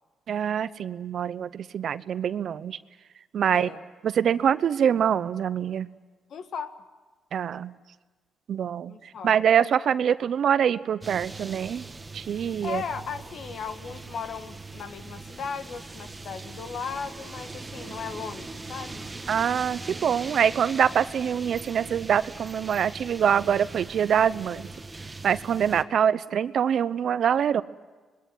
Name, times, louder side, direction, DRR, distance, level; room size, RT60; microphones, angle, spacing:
voice 1, 0.3-2.8 3.3-3.7 4.0-5.9 7.3-7.7 8.5-9.0 9.2-11.8 12.1-12.8 19.3-24.7 25.2-27.6, right 8 dB, 60° right, 15 dB, 0.9 m, -24 dB
voice 2, 3.4-3.8 6.3-6.8 8.9-9.3 12.6-19.1 25.9-26.0, left 6 dB, 65° left, 9 dB, 1.7 m, -37 dB
sound 1, 11.0-25.8, right 3 dB, 20° right, 1.4 m, -41 dB
26.0 x 21.0 x 9.5 m, 1.3 s
cardioid pair, 90°, 0 cm